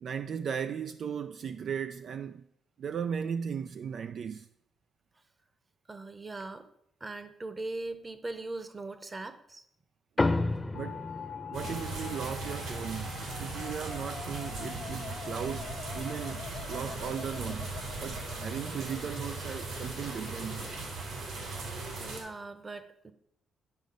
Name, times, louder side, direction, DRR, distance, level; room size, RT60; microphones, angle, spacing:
voice 1, 0.0-2.4 2.8-4.5 10.7-11.1 11.5-17.7 18.0-20.7, right 7 dB, 60° right, 0.3 m, -37 dB
voice 2, 5.9-6.7 7.0-9.6 22.0-23.1, right 2 dB, 25° right, 0.9 m, -40 dB
sound 1, 10.2-14.9, left 2 dB, 20° left, 0.5 m, -34 dB
sound 2, 10.7-20.7, left 7 dB, 60° left, 0.9 m, -45 dB
sound 3, 11.5-22.2, right 3 dB, 80° right, 2.6 m, -38 dB
9.5 x 5.2 x 5.1 m
cardioid pair, 90°, 0 cm